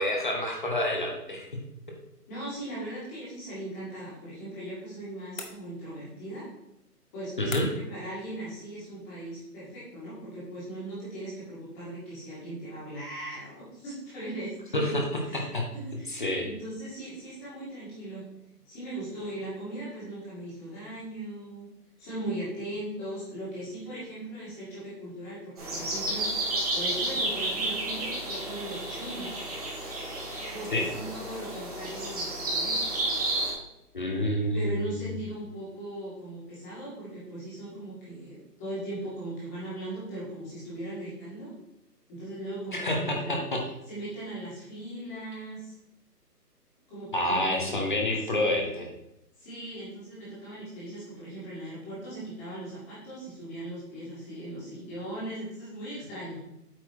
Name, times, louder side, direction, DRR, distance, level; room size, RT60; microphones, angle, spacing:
voice 1, 0.0-1.5 7.4-7.7 14.7-15.0 15.3-15.7 16.1-16.5 30.7-30.9 33.9-34.9 42.7-43.6 47.1-48.9, left 1 dB, 30° left, 1 dB, 0.9 m, -28 dB
voice 2, 2.3-6.5 7.1-15.0 15.3-15.5 15.9-18.2 18.7-21.7 22.0-29.4 30.5-33.0 34.5-41.5 42.1-43.4 43.9-45.7 46.9-47.7 48.2-48.7 49.4-56.4, right 1 dB, 10° left, -8 dB, 1.8 m, -39 dB
sound 1, 5.4-6.1 7.5-8.0, left 4 dB, 55° left, 1.3 m, -41 dB
sound 2, 25.6-33.5, right 2 dB, 25° right, 1.6 m, -31 dB
8.5 x 4.1 x 4.6 m, 0.84 s
hypercardioid pair, 170°, 48 cm